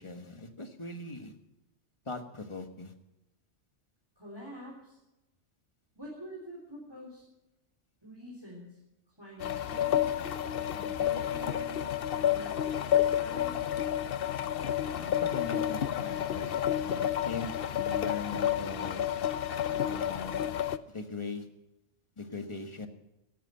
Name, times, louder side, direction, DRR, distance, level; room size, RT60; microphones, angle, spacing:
voice 1, 0.0-1.3 2.0-2.9 14.9-16.5 16.8-19.1 19.8-20.4 20.9-21.5 22.2-22.9, left 3 dB, 25° left, 7 dB, 1.3 m, -40 dB
voice 2, 4.2-5.0 6.0-7.2 8.0-8.8 9.1-10.2 10.7-13.7, right 1 dB, 20° right, -3 dB, 3.5 m, -47 dB
sound 1, 9.4-20.8, left 10 dB, 55° left, 0.8 m, -30 dB
16.0 x 11.0 x 5.6 m, 0.97 s
omnidirectional pair, 1.3 m